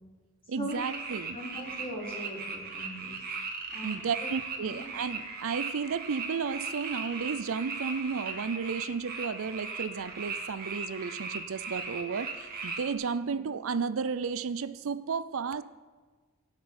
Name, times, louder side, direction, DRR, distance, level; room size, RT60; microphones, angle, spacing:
voice 1, 0.5-1.4 3.8-15.6, right 5 dB, 70° right, 0.5 m, -33 dB
sound 1, 0.7-12.9, right 4 dB, 45° right, 2.0 m, -38 dB
voice 2, 1.3-3.2 3.7-4.3 4.6-4.9 13.2-13.4, equal, 25° left, 4.0 m, -40 dB
17.0 x 6.2 x 8.7 m
head